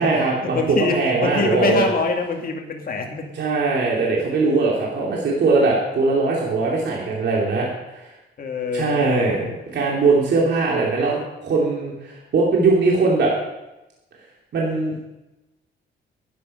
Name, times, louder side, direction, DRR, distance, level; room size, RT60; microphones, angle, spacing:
voice 1, 0.0-1.9 3.3-8.1 8.7-13.3 14.5-15.0, right 3 dB, 60° right, -3 dB, 2.9 m, -20 dB
voice 2, 0.5-3.3 8.4-9.5, left 4 dB, 45° left, 2 dB, 2.3 m, -25 dB
12.0 x 9.9 x 5.6 m, 0.98 s
cardioid pair, 90°, 20 cm